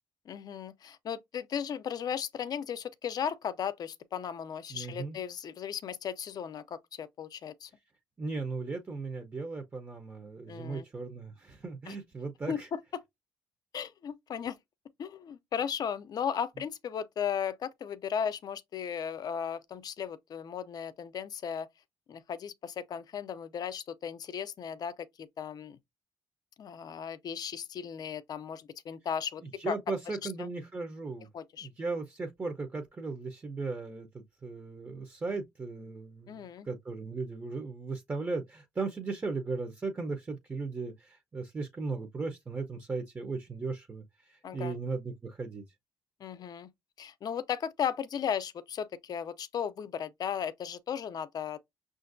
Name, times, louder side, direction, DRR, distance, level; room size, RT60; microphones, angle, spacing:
voice 1, 0.3-7.7 10.5-10.9 11.9-12.0 12.5-13.0 13.7-14.6 15.0-21.7 22.1-25.8 26.6-29.8 30.1-30.5 31.3-31.7 36.3-36.7 44.4-44.7 46.2-46.7 47.0-51.6, left 8 dB, 50° left, 0.5 m, -36 dB
voice 2, 4.7-5.2 8.2-12.7 29.6-31.3 31.6-45.6, right 3 dB, 25° right, 0.7 m, -37 dB
5.7 x 2.5 x 2.5 m
cardioid pair, 95°, 8 cm